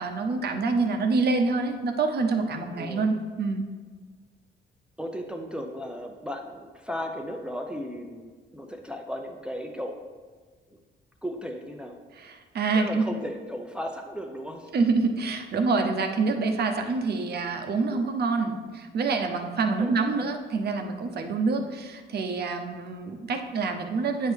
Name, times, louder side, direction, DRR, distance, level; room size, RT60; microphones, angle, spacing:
voice 1, 0.0-3.6 12.1-13.0 14.7-24.3, right 4 dB, 55° right, 5 dB, 0.8 m, -26 dB
voice 2, 2.8-3.1 5.0-10.0 11.2-12.0 12.7-14.7 19.8-20.0, equal, 5° right, 3 dB, 0.6 m, -35 dB
9.1 x 4.5 x 3.4 m, 1.5 s
cardioid pair, 90°, 20 cm